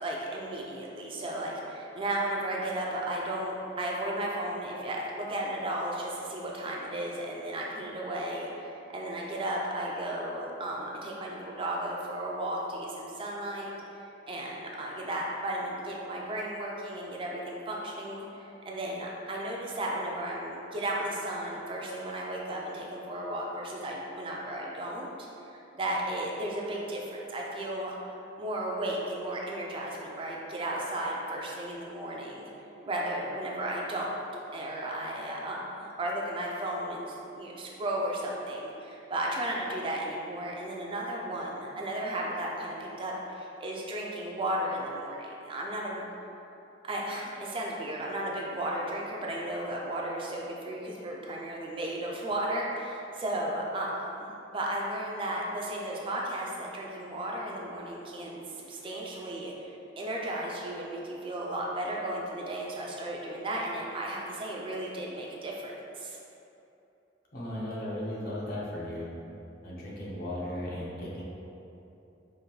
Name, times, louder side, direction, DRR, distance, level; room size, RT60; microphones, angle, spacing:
voice 1, 0.0-13.7 14.3-27.9 28.4-32.5 32.8-34.1 34.5-46.0 46.8-66.2, right 1 dB, 30° right, -3 dB, 0.4 m, -34 dB
voice 2, 67.3-69.1 69.6-71.2, left 1 dB, 50° left, -5 dB, 0.8 m, -36 dB
5.0 x 2.6 x 3.0 m, 2.9 s
head